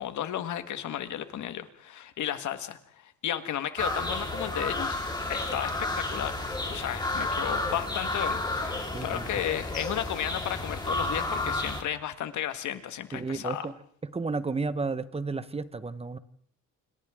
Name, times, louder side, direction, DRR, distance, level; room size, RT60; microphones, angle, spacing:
voice 1, 0.0-6.4 6.7-13.7, left 11 dB, 75° left, 9 dB, 1.8 m, -34 dB
sound 1, 3.8-11.8, left 2 dB, 15° left, 4.3 m, -31 dB
voice 2, 8.9-9.3 13.1-13.7 14.0-16.2, right 4 dB, 20° right, 13 dB, 1.3 m, -32 dB
29.5 x 27.0 x 3.8 m, 0.62 s
cardioid pair, 90°, 30 cm